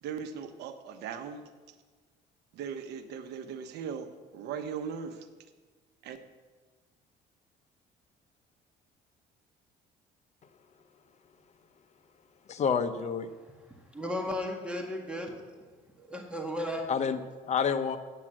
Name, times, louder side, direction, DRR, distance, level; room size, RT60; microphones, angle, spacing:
voice 1, 0.0-1.5 2.5-4.1 4.3-5.3 6.0-6.2, right 7 dB, 80° right, 9 dB, 1.0 m, -38 dB
voice 2, 12.5-13.3 16.9-18.0, left 6 dB, 40° left, 9 dB, 0.8 m, -29 dB
voice 3, 13.9-16.9, left 1 dB, 5° right, 1 dB, 1.7 m, -35 dB
9.0 x 7.4 x 7.5 m, 1.4 s
cardioid pair, 110°, 17 cm